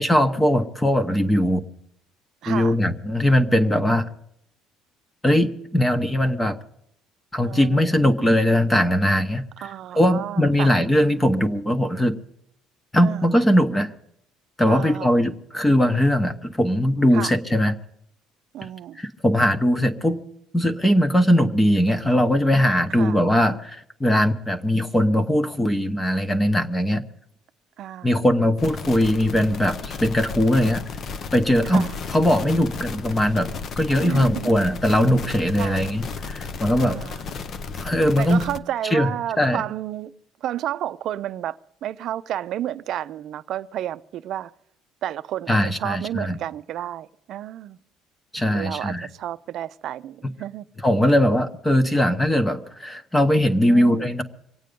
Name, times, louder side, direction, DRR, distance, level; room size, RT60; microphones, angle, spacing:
voice 1, 0.0-1.6 2.5-4.1 5.2-6.6 7.3-12.2 12.9-13.9 14.6-17.7 19.0-20.2 20.5-27.0 28.0-30.8 31.3-33.5 33.8-37.0 37.8-38.4 38.9-39.1 39.4-39.6 45.5-46.4 48.3-49.1 50.8-54.2, equal, 10° left, 1.0 m, -20 dB
voice 2, 2.4-2.7 7.4-7.9 9.6-10.7 13.0-13.2 14.7-15.2 17.1-17.3 18.5-19.0 23.0-23.2 27.8-28.2 31.7-31.9 34.0-34.5 35.6-35.9 36.8-37.3 38.2-40.1 40.4-44.5 45.0-47.8 48.5-50.7 53.7-54.1, right 12 dB, 50° right, 0.5 m, -31 dB
sound 1, 28.6-38.6, left 5 dB, 35° left, 0.6 m, -34 dB
24.5 x 9.1 x 5.3 m
cardioid pair, 165°, 0 cm